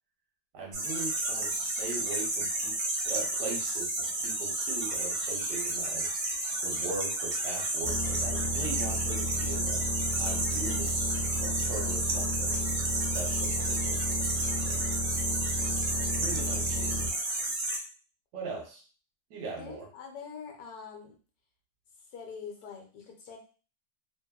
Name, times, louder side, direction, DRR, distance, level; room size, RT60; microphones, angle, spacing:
voice 1, 0.5-2.8 3.0-6.3 6.6-9.8 10.2-12.6 13.1-14.9 15.9-17.2 18.3-18.8 19.3-19.8, right 3 dB, 75° right, -1 dB, 1.4 m, -41 dB
sound 1, 0.7-17.8, right 2 dB, 55° right, 0.7 m, -31 dB
sound 2, 7.8-17.1, equal, 90° left, 1.2 m, -34 dB
voice 2, 19.5-21.2 22.1-23.4, left 6 dB, 70° left, 2 dB, 1.1 m, -44 dB
3.3 x 2.0 x 2.2 m, 0.36 s
omnidirectional pair, 1.8 m